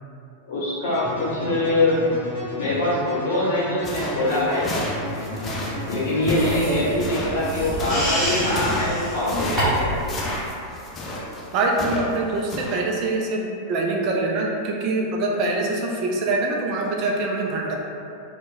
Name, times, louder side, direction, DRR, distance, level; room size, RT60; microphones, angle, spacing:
voice 1, 0.5-2.0 2.5-4.7 5.9-9.9, left 1 dB, 55° left, -9 dB, 1.0 m, -23 dB
sound 1, 0.9-8.5, equal, 75° left, 0.6 m, -33 dB
sound 2, 3.8-12.2 12.5-12.8, left 1 dB, 20° left, 0.5 m, -31 dB
sound 3, 6.2-10.0, equal, 15° right, 0.9 m, -28 dB
voice 2, 11.5-17.8, right 2 dB, 40° right, -1 dB, 0.3 m, -24 dB
2.9 x 2.1 x 2.5 m, 2.5 s
figure-of-eight pair, 90°, 0 cm